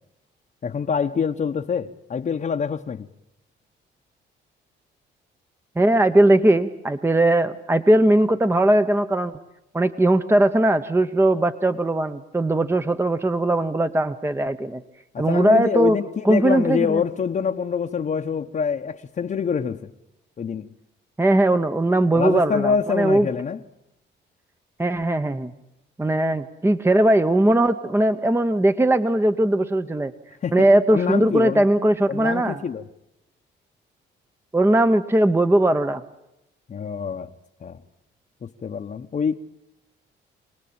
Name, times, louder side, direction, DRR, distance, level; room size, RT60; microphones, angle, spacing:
voice 1, 0.6-3.1 15.1-19.9 20.4-20.7 22.1-23.6 30.4-31.7 32.1-32.8 36.7-37.3 37.6-37.8 38.4-39.4, left 6 dB, 40° left, 1.0 m, -25 dB
voice 2, 5.8-9.4 9.7-14.8 15.2-16.0 16.2-17.0 21.2-23.3 24.8-25.5 26.0-30.1 30.5-32.6 34.5-36.0, right 1 dB, 10° right, 0.9 m, -19 dB
26.0 x 19.0 x 8.7 m
cardioid pair, 90°, 20 cm